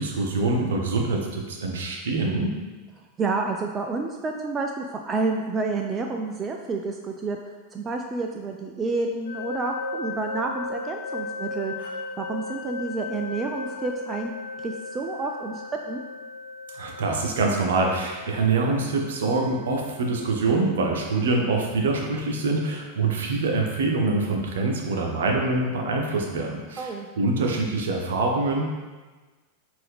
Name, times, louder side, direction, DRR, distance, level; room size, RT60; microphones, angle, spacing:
voice 1, 0.0-2.5 16.7-28.7, right 3 dB, 60° right, 1 dB, 0.7 m, -25 dB
voice 2, 3.2-7.4 7.7-14.3 14.6-16.0 26.8-27.1, right 3 dB, 20° right, 3 dB, 0.3 m, -29 dB
sound 1, 9.3-24.1, left 3 dB, 65° left, 0.5 m, -37 dB
5.4 x 2.6 x 3.5 m, 1.3 s
figure-of-eight pair, 90°, 0 cm